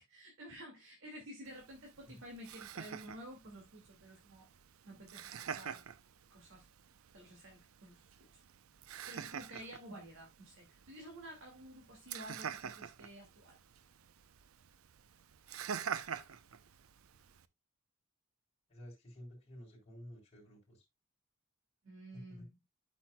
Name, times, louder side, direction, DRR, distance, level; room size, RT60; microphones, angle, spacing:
voice 1, 0.0-4.5 4.8-5.8 6.3-6.7 7.1-8.3 9.1-13.6 21.8-22.5, right 1 dB, 65° right, 2.1 m, -52 dB
Laughter, 1.5-17.5, right 7 dB, 85° right, 0.6 m, -47 dB
voice 2, 18.7-20.8 22.1-22.5, equal, 30° left, 3.8 m, -52 dB
12.5 x 6.0 x 2.2 m
head